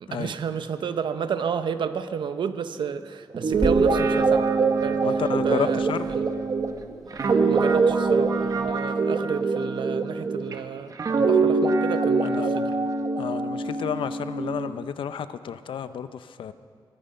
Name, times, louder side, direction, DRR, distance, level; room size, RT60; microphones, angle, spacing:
voice 1, 0.0-4.5 4.8-5.1 5.4-5.8 6.1-6.3 7.2-12.7, right 7 dB, 70° right, 11 dB, 0.7 m, -31 dB
Guitar, 3.3-10.5 11.0-14.7, right 4 dB, 45° right, 0.9 m, -23 dB
Growling / Hiss, 3.5-8.7, left 1 dB, 5° left, 1.1 m, -39 dB
voice 2, 5.0-6.1 12.2-12.5 13.2-16.5, left 8 dB, 85° left, 12 dB, 0.6 m, -31 dB
22.0 x 10.0 x 5.6 m, 2.1 s
wide cardioid pair, 155°, 8 cm